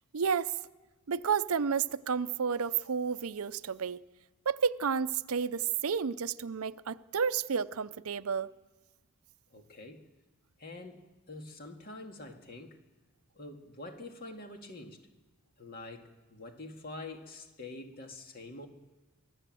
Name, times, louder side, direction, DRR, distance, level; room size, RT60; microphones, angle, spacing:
voice 1, 0.1-0.5 1.1-4.0 4.5-8.5, right 6 dB, 75° right, 0.6 m, -31 dB
voice 2, 9.5-10.1 10.6-12.8 13.3-15.0 15.6-18.7, left 2 dB, 40° left, 2.2 m, -46 dB
24.0 x 16.0 x 7.7 m
head